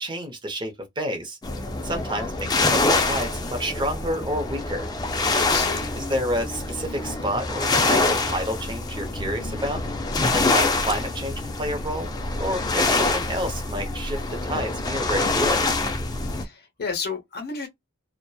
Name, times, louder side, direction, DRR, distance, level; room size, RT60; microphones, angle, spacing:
voice 1, 0.0-1.4 1.8-4.9 5.9-9.8 10.3-12.1 12.4-15.6, equal, 20° right, 0.7 m, -29 dB
sound 1, 1.4-16.4, left 3 dB, 20° left, 0.4 m, -25 dB
voice 2, 5.4-6.0 16.2-17.7, left 5 dB, 50° left, 0.8 m, -32 dB
2.8 x 2.1 x 2.2 m
head